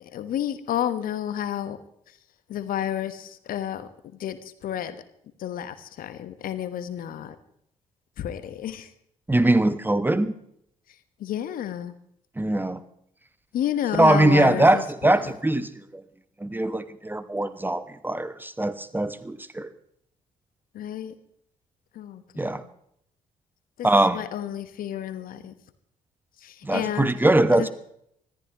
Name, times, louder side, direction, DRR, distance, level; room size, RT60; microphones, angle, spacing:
voice 1, 0.1-1.8 2.5-3.9 4.2-4.4 4.6-4.9 5.4-7.3 8.2-8.9 11.2-11.9 13.5-15.1 20.7-21.1 22.0-22.6 24.1-25.5 26.4-27.1 27.5-27.7, left 10 dB, 55° left, 12 dB, 1.3 m, -30 dB
voice 2, 9.3-10.3 12.4-12.8 13.9-16.0 16.4-19.7 22.4-22.6 23.8-24.2 26.6-27.7, right 1 dB, 10° right, 13 dB, 1.2 m, -22 dB
25.0 x 14.5 x 3.0 m, 0.71 s
figure-of-eight pair, 45°, 18 cm